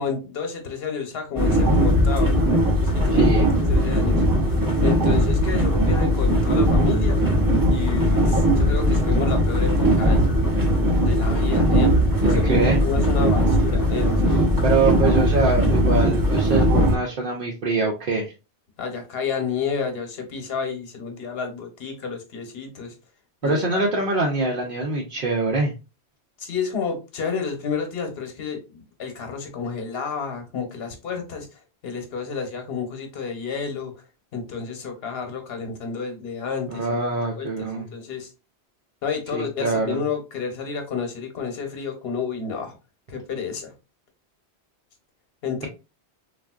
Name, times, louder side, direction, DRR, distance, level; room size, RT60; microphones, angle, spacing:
voice 1, 0.0-2.3 3.0-3.3 3.7-4.2 4.8-7.2 7.7-10.3 11.0-14.6 18.8-22.9 23.4-23.6 26.4-31.5 31.8-33.9 34.3-36.9 37.2-38.3 39.0-42.7 43.1-43.7 45.4-45.7, left 6 dB, 65° left, 1.0 m, -30 dB
sound 1, 1.4-17.0, equal, 25° right, 0.5 m, -19 dB
voice 2, 3.1-3.5 12.2-12.8 14.6-18.3 23.4-25.7 36.7-37.9 39.3-40.0, right 3 dB, 60° right, 0.7 m, -24 dB
3.5 x 2.4 x 2.2 m
omnidirectional pair, 1.1 m